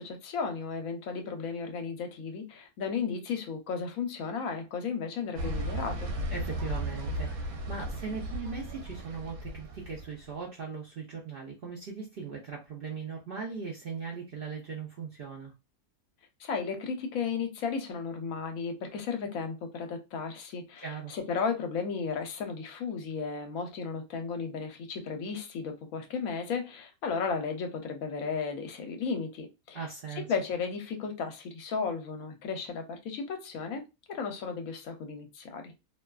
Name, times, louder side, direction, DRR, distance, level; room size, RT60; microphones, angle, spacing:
voice 1, 0.0-6.1 16.4-29.8 30.2-33.8 34.1-35.7, left 5 dB, 75° left, 1.0 m, -34 dB
sound 1, 5.4-10.2, right 1 dB, 85° right, 1.1 m, -35 dB
voice 2, 6.3-15.5 20.8-21.1 29.7-30.2, right 5 dB, 60° right, 0.6 m, -39 dB
2.6 x 2.2 x 2.3 m
omnidirectional pair, 1.5 m